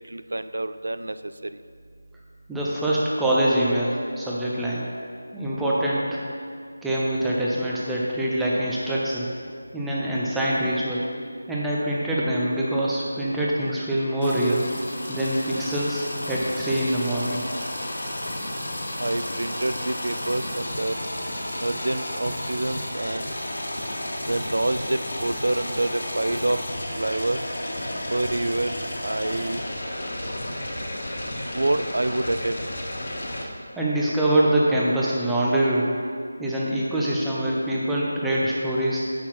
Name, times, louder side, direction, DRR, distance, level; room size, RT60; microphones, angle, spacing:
voice 1, 0.1-1.6 19.0-20.9 21.6-23.3 24.3-26.6 26.9-27.4 28.1-28.8 29.0-29.6 31.5-32.6, right 2 dB, 85° right, 12 dB, 0.4 m, -27 dB
voice 2, 2.5-4.9 5.3-6.2 6.8-9.3 9.7-11.1 11.5-14.7 15.1-17.4 33.8-35.9 36.4-39.0, right 1 dB, 5° right, -7 dB, 0.7 m, -24 dB
sound 1, 14.2-33.4, left 1 dB, 60° left, 1.4 m, -32 dB
8.0 x 5.9 x 4.3 m, 2.2 s
figure-of-eight pair, 170°, 0 cm